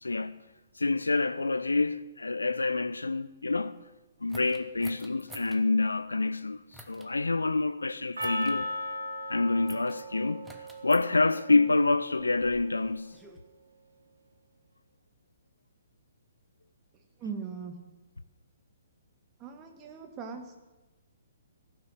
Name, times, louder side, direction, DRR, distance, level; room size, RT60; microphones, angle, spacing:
voice 1, 0.0-0.4 0.8-3.8 4.2-8.7 9.3-10.4 10.8-13.1, left 3 dB, 75° left, 0.4 m, -27 dB
sound 1, 4.3-5.6 6.7-7.1 8.2-8.6 9.7-10.0 10.4-11.1 12.0-13.4, right 1 dB, 5° right, 1.0 m, -51 dB
Percussion, 8.2-12.6, left 1 dB, 75° right, 2.0 m, -38 dB
voice 2, 16.9-17.8 19.4-20.6, right 5 dB, 20° right, 1.4 m, -40 dB
16.0 x 6.2 x 7.2 m
figure-of-eight pair, 125°, 0 cm